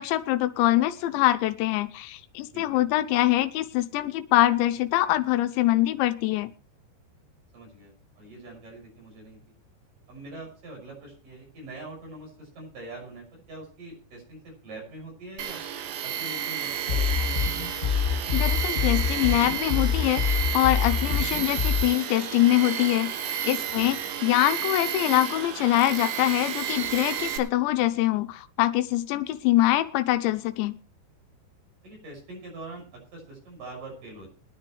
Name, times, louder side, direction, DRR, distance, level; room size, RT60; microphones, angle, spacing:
voice 1, 0.0-6.5 18.3-23.1 23.4-24.0 24.2-30.8, left 15 dB, 90° left, 9 dB, 3.1 m, -24 dB
voice 2, 2.5-2.8 7.5-9.4 10.1-15.6 16.0-17.6 23.7-23.9 31.8-34.3, right 2 dB, 50° right, 0 dB, 8.0 m, -43 dB
Tools, 15.4-27.4, right 9 dB, 85° right, 3.9 m, -31 dB
sound 1, 16.9-21.8, left 7 dB, 20° left, 4.8 m, -26 dB
23.5 x 9.9 x 3.2 m, 0.36 s
omnidirectional pair, 5.1 m